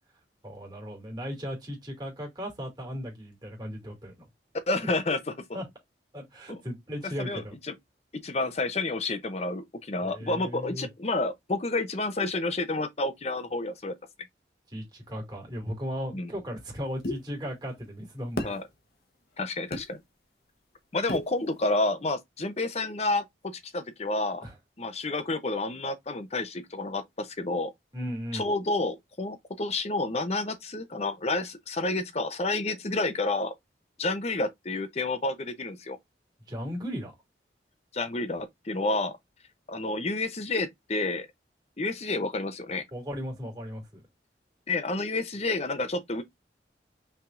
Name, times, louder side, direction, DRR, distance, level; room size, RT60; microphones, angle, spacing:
voice 1, 0.4-4.3 4.8-4.9 5.5-5.6 6.1-7.5 10.0-10.9 14.7-18.5 24.4-24.6 27.9-28.5 36.5-37.1 42.9-44.0, equal, 25° right, 2.5 m, -36 dB
voice 2, 4.7-5.2 5.5-5.6 7.2-7.7 8.2-13.9 16.1-16.3 18.4-18.6 19.4-20.0 20.9-24.5 24.8-27.7 28.3-33.5 34.0-36.0 37.9-39.2 39.7-41.3 41.8-42.8 44.7-46.2, left 2 dB, 35° left, 0.7 m, -30 dB
sound 1, 17.0-17.2 18.4-18.6 19.7-19.9 21.1-21.3, left 1 dB, 55° left, 1.0 m, -31 dB
5.6 x 3.5 x 2.5 m
head